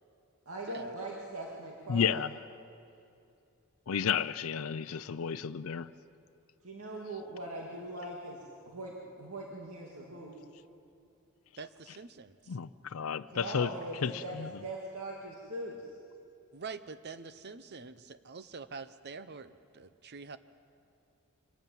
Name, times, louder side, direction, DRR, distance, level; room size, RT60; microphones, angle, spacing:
voice 1, 0.5-2.2 6.6-8.4 8.7-10.4 13.3-15.9, right 1 dB, 85° right, -2 dB, 2.2 m, -41 dB
voice 2, 1.9-2.3 3.9-5.9 12.5-13.7 14.0-14.5, left 7 dB, 70° left, 12 dB, 0.5 m, -32 dB
voice 3, 11.6-12.4 16.5-20.4, right 4 dB, 50° right, 13 dB, 0.8 m, -45 dB
24.5 x 14.0 x 9.1 m, 2.6 s
head